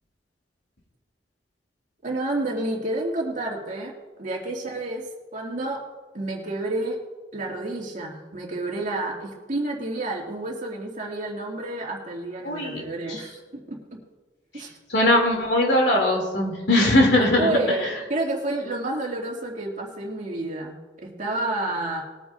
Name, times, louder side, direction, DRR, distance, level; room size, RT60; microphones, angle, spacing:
voice 1, 2.0-3.9 4.2-5.0 5.3-5.8 6.1-7.0 7.3-14.0 14.5-14.7 17.4-22.0, right 2 dB, 45° right, -2 dB, 2.7 m, -29 dB
voice 2, 12.4-12.8 13.1-13.2 14.9-17.9, left 1 dB, 70° left, 0 dB, 3.2 m, -20 dB
21.0 x 9.1 x 2.7 m, 1.3 s
head